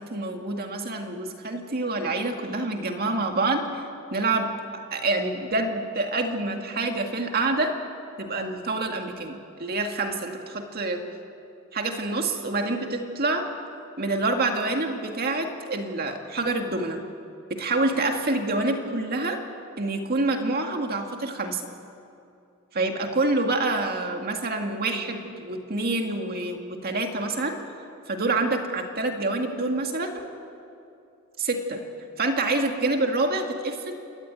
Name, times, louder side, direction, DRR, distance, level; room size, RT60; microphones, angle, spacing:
voice 1, 0.0-3.8 4.1-4.6 4.9-7.7 8.2-11.0 11.7-13.5 14.0-17.0 17.5-19.4 19.8-21.6 22.7-27.6 28.1-30.3 31.5-31.6 32.2-33.9, right 2 dB, 45° right, 4 dB, 2.1 m, -27 dB
29.0 x 13.5 x 9.1 m, 2.6 s
head